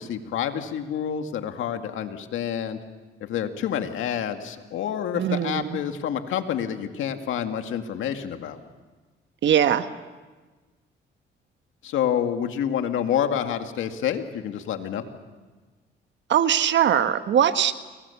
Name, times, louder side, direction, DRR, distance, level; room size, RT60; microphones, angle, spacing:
voice 1, 0.0-2.8 3.2-8.6 11.8-15.0, left 9 dB, 80° left, 6 dB, 2.1 m, -28 dB
voice 2, 5.1-5.8 9.4-9.9 16.3-17.7, right 9 dB, 65° right, 10 dB, 1.3 m, -21 dB
30.0 x 23.0 x 7.2 m, 1.3 s
cardioid pair, 90°, 20 cm